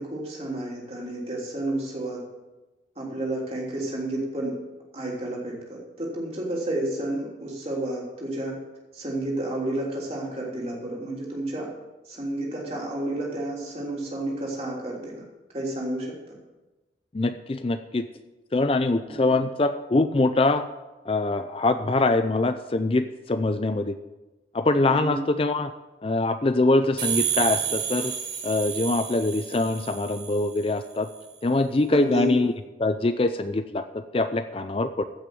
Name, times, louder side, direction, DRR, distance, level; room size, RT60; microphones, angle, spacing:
voice 1, 0.0-2.2 3.0-4.6 4.9-8.6 8.9-11.7 12.1-15.2 15.5-16.1 19.1-19.4 24.9-25.2 31.9-32.3, right 1 dB, 35° right, -3 dB, 3.3 m, -31 dB
voice 2, 17.1-18.0 18.5-20.7 21.1-23.9 24.5-25.7 26.0-28.1 28.4-31.1 31.4-32.5 32.8-33.8 34.1-35.0, left 2 dB, 30° left, 10 dB, 0.4 m, -23 dB
sound 1, 27.0-30.6, right 8 dB, 85° right, 4.7 m, -30 dB
14.5 x 6.2 x 7.7 m, 1.1 s
head